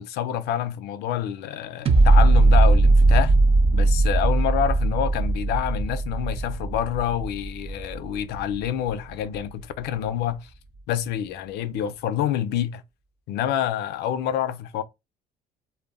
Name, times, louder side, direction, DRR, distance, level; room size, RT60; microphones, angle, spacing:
voice 1, 0.0-3.3 3.7-10.5 10.9-12.8 13.3-14.8, left 10 dB, 75° left, 0.4 m, -27 dB
sound 1, 1.9-8.9 9.4-9.5, right 2 dB, 35° right, 0.5 m, -19 dB
2.1 x 2.0 x 3.4 m
cardioid pair, 110°, 17 cm